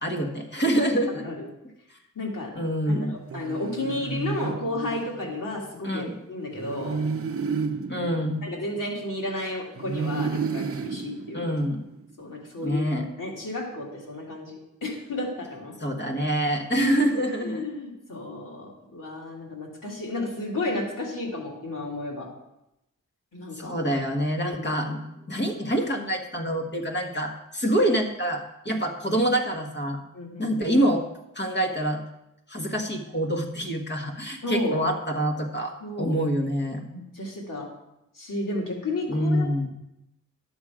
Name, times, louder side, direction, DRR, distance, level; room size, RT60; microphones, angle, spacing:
voice 1, 0.0-1.2 2.5-3.2 5.8-6.1 7.9-8.5 11.3-11.8 12.6-13.1 15.8-17.7 23.5-25.0 25.3-30.0 30.4-31.0 31.3-32.0 32.5-36.8 39.1-39.7, equal, 35° left, 2 dB, 1.5 m, -26 dB
voice 2, 1.2-1.5 2.1-2.5 2.9-7.0 8.4-11.4 12.2-12.9 13.2-15.7 17.4-22.3 23.3-23.7 24.4-24.7 30.1-30.8 34.4-34.8 35.8-36.2 36.9-37.7 38.1-39.7, left 2 dB, 80° left, -2 dB, 2.5 m, -32 dB
sound 1, 3.3-5.4 6.5-9.2 9.8-12.0, right 5 dB, 45° right, 0.6 m, -32 dB
11.5 x 7.2 x 4.9 m, 0.86 s
wide cardioid pair, 105°, 32 cm